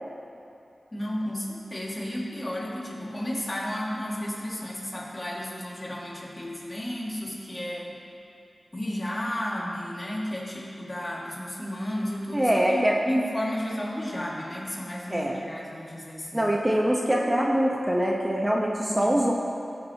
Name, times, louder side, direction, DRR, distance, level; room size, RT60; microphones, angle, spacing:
voice 1, 0.9-8.0 8.7-16.5 18.8-19.3, equal, 30° left, -4 dB, 2.2 m, -33 dB
voice 2, 12.3-13.0 15.1-15.4 16.3-19.3, equal, 20° right, -2 dB, 1.1 m, -24 dB
15.5 x 7.6 x 3.0 m, 2.6 s
cardioid pair, 45°, 0 cm